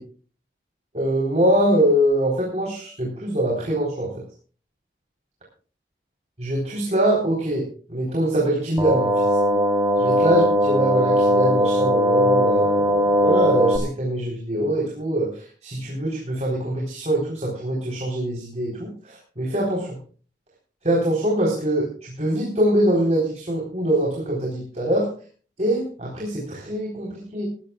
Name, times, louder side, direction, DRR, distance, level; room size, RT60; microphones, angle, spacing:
voice 1, 0.9-4.1 6.4-9.1 10.0-15.3 15.6-19.9 20.8-25.1 25.6-27.5, right 1 dB, 40° right, -3 dB, 3.9 m, -23 dB
sound 1, 8.8-13.8, equal, 20° right, 2.7 m, -19 dB
19.5 x 14.5 x 2.3 m, 0.40 s
head